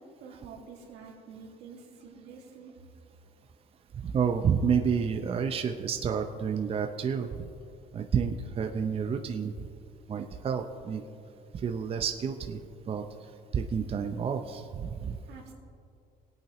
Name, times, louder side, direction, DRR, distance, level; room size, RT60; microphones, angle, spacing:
voice 1, 0.0-2.7 15.3-15.5, right 5 dB, 85° right, -1 dB, 2.1 m, -48 dB
voice 2, 3.9-7.5 7.9-9.5 10.1-11.0 11.5-12.6 12.9-13.0 13.5-15.2, right 6 dB, 35° right, 5 dB, 0.6 m, -29 dB
19.0 x 8.7 x 3.0 m, 2.4 s
cardioid pair, 110°, 17 cm